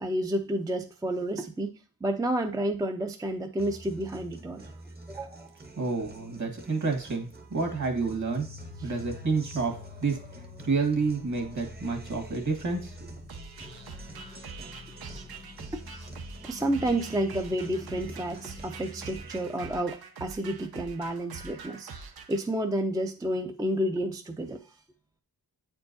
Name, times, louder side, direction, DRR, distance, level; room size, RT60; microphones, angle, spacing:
voice 1, 0.0-1.7 2.0-4.7 5.1-5.5 8.8-8.9 15.7-15.8 16.4-21.9 22.3-24.6, right 1 dB, 10° right, 5 dB, 0.4 m, -30 dB
Guitar, 3.6-19.6, right 1 dB, 25° right, 0.8 m, -47 dB
voice 2, 5.8-8.5 8.8-13.1, right 4 dB, 55° right, 4 dB, 1.7 m, -29 dB
sound 1, 8.3-19.2, left 5 dB, 65° left, 0.8 m, -49 dB
sound 2, 13.3-22.4, right 5 dB, 90° right, 0.8 m, -44 dB
8.4 x 4.5 x 2.6 m, 0.40 s
wide cardioid pair, 145°, 36 cm